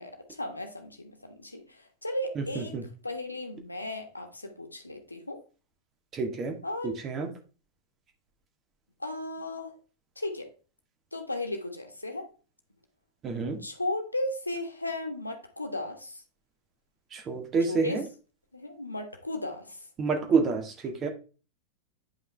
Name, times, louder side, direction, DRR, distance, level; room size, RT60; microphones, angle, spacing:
voice 1, 0.0-2.7 3.0-5.4 6.6-6.9 9.0-9.7 10.2-10.5 11.1-12.3 13.6-16.2 17.7-18.0 18.5-19.9, left 1 dB, 85° left, 4 dB, 1.5 m, -35 dB
voice 2, 2.3-2.8 6.1-6.6 6.8-7.3 13.2-13.6 17.1-18.0 20.0-21.1, right 4 dB, 25° right, 5 dB, 1.8 m, -28 dB
9.3 x 5.6 x 3.4 m, 0.36 s
figure-of-eight pair, 90°, 0 cm